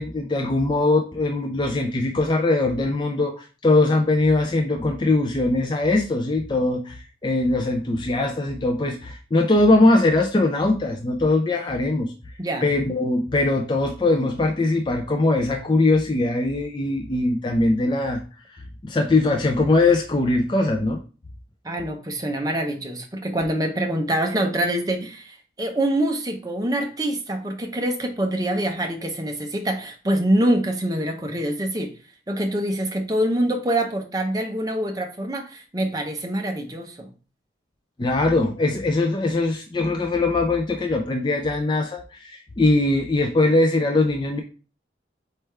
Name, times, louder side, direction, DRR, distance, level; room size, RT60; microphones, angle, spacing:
voice 1, 0.0-12.1 12.6-18.2 18.8-21.0 38.0-44.4, left 2 dB, 25° left, 3 dB, 0.4 m, -21 dB
voice 2, 21.6-31.9 32.3-37.1, right 1 dB, 20° right, 3 dB, 0.6 m, -25 dB
4.4 x 3.4 x 3.2 m, 0.35 s
head